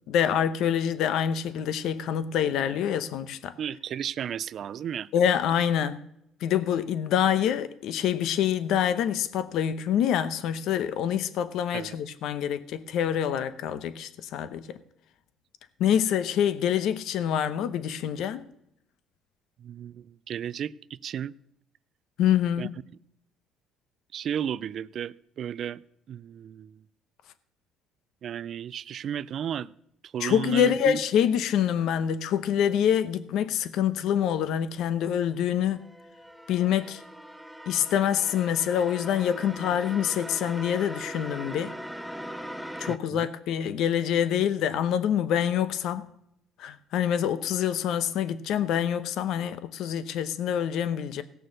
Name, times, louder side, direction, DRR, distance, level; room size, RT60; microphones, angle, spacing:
voice 1, 0.1-3.5 5.1-6.0 6.4-14.8 15.8-18.4 22.2-22.7 30.2-35.8 36.5-37.0 37.7-41.7 42.8-46.1 46.6-51.2, left 9 dB, 70° left, 0.9 m, -26 dB
voice 2, 3.6-5.1 11.7-12.0 19.6-20.7 21.0-21.3 22.6-22.7 24.1-25.8 26.1-26.8 28.2-29.7 30.0-31.0 42.9-43.3, right 9 dB, 55° right, 0.4 m, -33 dB
sound 1, 35.3-43.0, equal, ahead, 0.7 m, -41 dB
17.0 x 6.8 x 6.4 m
cardioid pair, 110°, 0 cm